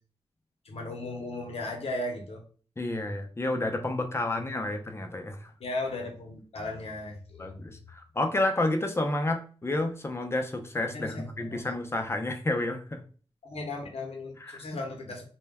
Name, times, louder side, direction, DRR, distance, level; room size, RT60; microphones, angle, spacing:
voice 1, 0.6-2.4 5.6-7.5 10.9-11.6 13.4-15.2, left 2 dB, 80° left, 1 dB, 0.7 m, -36 dB
voice 2, 2.8-5.5 7.4-13.0 14.4-14.8, left 2 dB, 25° left, 5 dB, 0.5 m, -30 dB
2.1 x 2.1 x 3.3 m, 0.40 s
wide cardioid pair, 75°, 10 cm